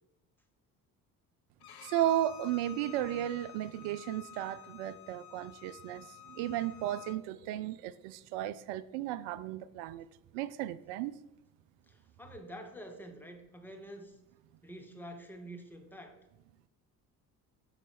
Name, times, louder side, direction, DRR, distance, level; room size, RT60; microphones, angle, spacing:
Bowed string instrument, 1.6-7.2, left 11 dB, 50° left, 0.8 m, -51 dB
voice 1, 1.8-10.1 10.3-11.2, right 12 dB, 60° right, 14 dB, 0.5 m, -34 dB
voice 2, 11.9-14.2 14.6-16.2, equal, 5° left, 4 dB, 0.9 m, -47 dB
5.5 x 3.9 x 4.9 m, 0.91 s
hypercardioid pair, 50°, 47 cm